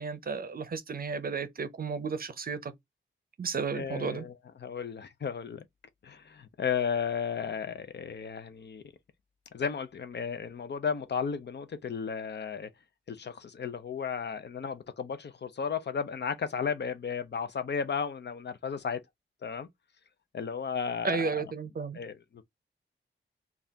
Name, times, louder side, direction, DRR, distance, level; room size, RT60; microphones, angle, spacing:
voice 1, 0.0-2.7 3.4-4.3 21.0-22.0, right 5 dB, 50° right, 0.6 m, -33 dB
voice 2, 3.7-4.3 4.6-5.6 6.0-8.8 9.5-12.7 13.1-19.0 19.4-19.7 20.3-21.3 21.9-22.4, left 6 dB, 60° left, 0.6 m, -34 dB
4.0 x 2.4 x 3.4 m
wide cardioid pair, 115°, 20 cm